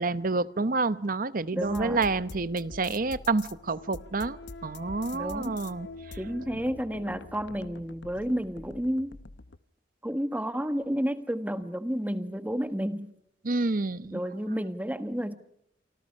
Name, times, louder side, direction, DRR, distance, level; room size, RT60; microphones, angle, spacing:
voice 1, 0.0-6.2 13.4-14.2, right 3 dB, 50° right, 0.9 m, -29 dB
voice 2, 1.5-2.1 5.1-5.6 6.2-9.2 10.0-13.1 14.1-15.4, equal, 10° right, 1.3 m, -31 dB
sound 1, 1.6-9.6, left 3 dB, 75° left, 0.9 m, -45 dB
28.0 x 25.0 x 5.5 m
head